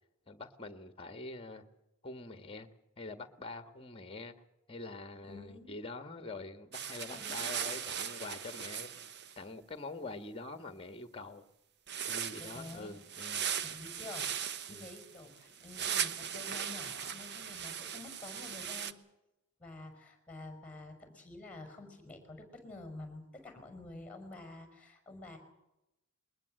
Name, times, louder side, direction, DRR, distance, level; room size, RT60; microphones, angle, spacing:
voice 1, 0.3-1.6 2.0-2.7 3.0-4.3 4.7-8.9 9.4-11.5 12.1-13.5 14.7-14.9 16.4-16.5, left 3 dB, 25° left, 10 dB, 1.6 m, -45 dB
voice 2, 5.2-5.8 7.0-7.8 12.4-12.9 13.6-19.0 19.6-25.4, left 2 dB, 5° left, 7 dB, 5.4 m, -49 dB
sound 1, 6.7-9.4 11.9-18.9, right 8 dB, 50° right, 1.1 m, -38 dB
21.5 x 20.0 x 7.7 m, 0.92 s
head